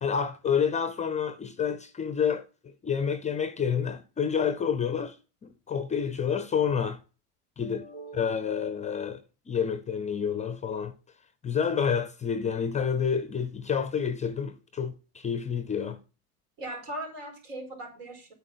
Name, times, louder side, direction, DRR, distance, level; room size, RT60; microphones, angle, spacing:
voice 1, 0.0-5.2 5.4-7.0 7.6-7.8 8.1-9.2 9.5-11.0 11.4-16.0, left 7 dB, 15° left, 0.4 m, -29 dB
voice 2, 7.6-8.7 16.6-18.3, right 1 dB, 80° right, 4.5 m, -40 dB
8.9 x 4.6 x 6.7 m
supercardioid pair, 115°, 46 cm